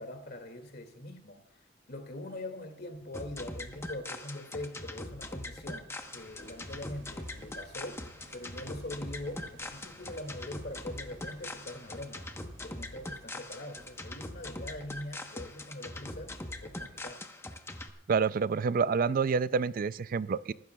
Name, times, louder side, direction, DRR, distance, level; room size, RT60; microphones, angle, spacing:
voice 1, 0.0-1.6 1.9-8.1 8.3-12.3 12.6-17.2, left 1 dB, 60° left, 2.3 m, -43 dB
sound 1, 3.1-17.9, left 1 dB, 15° left, 1.0 m, -42 dB
sound 2, 6.0-16.9 19.2-19.3, right 1 dB, 75° right, 2.9 m, -58 dB
voice 2, 18.1-20.5, right 5 dB, 50° right, 0.4 m, -28 dB
24.0 x 13.0 x 2.3 m
head